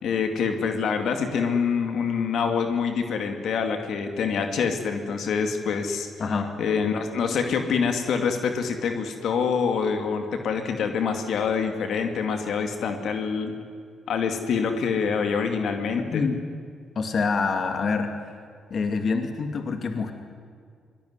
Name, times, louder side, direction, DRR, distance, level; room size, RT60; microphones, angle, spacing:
voice 1, 0.0-6.1 6.6-13.5 14.1-16.3, left 6 dB, 70° left, 6 dB, 2.5 m, -26 dB
voice 2, 6.2-6.5 16.1-16.4 17.0-18.1 18.7-20.1, left 4 dB, 55° left, 6 dB, 2.4 m, -26 dB
24.0 x 19.0 x 9.8 m, 2.1 s
supercardioid pair, 55°, 0 cm